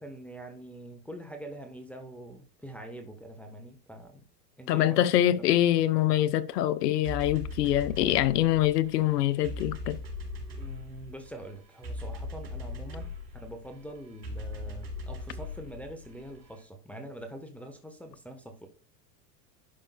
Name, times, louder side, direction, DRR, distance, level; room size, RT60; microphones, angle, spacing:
voice 1, 0.0-4.2 4.6-5.6 10.6-18.7, right 1 dB, 5° left, 1.1 m, -44 dB
voice 2, 4.7-10.0, left 13 dB, 70° left, 0.8 m, -24 dB
sound 1, 7.0-16.6, left 2 dB, 85° right, 4.0 m, -40 dB
11.0 x 5.6 x 2.3 m
hypercardioid pair, 90°, 50 cm